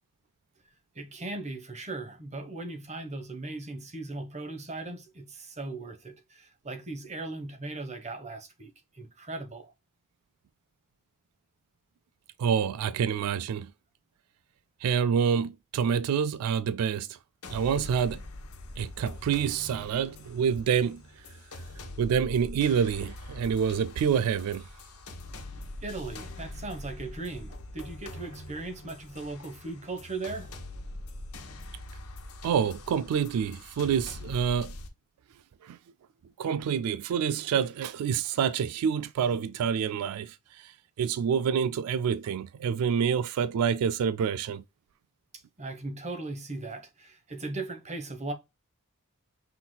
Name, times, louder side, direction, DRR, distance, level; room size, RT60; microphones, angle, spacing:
voice 1, 0.9-9.7 25.8-30.5 45.6-48.3, right 2 dB, 30° right, 1.1 m, -38 dB
voice 2, 12.4-13.7 14.8-17.1 17.5-18.2 18.8-21.0 22.0-24.6 32.4-34.7 35.6-35.8 36.4-40.7 41.0-44.6, right 7 dB, 75° right, 0.3 m, -27 dB
sound 1, 17.4-34.9, left 1 dB, 80° left, 1.3 m, -43 dB
5.6 x 4.0 x 2.2 m
head